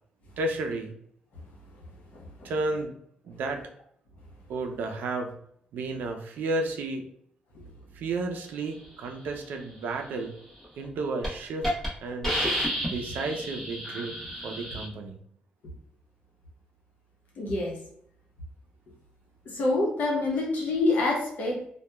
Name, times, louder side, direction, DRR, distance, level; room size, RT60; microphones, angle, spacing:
voice 1, 0.4-0.9 2.4-2.9 3.2-3.6 4.5-5.4 5.7-7.1 7.9-10.3 10.8-11.7 12.0-12.4 12.8-14.2 14.4-15.2, right 2 dB, 80° right, 4 dB, 0.4 m, -32 dB
voice 2, 2.1-2.5 17.4-17.8 19.5-21.7, left 2 dB, 70° left, -1 dB, 0.8 m, -27 dB
Hiss, 10.6-10.9 11.2-11.3 11.6-11.9 12.2-14.8, equal, 10° left, 0.9 m, -30 dB
2.8 x 2.2 x 2.2 m, 0.67 s
cardioid pair, 130°, 3 cm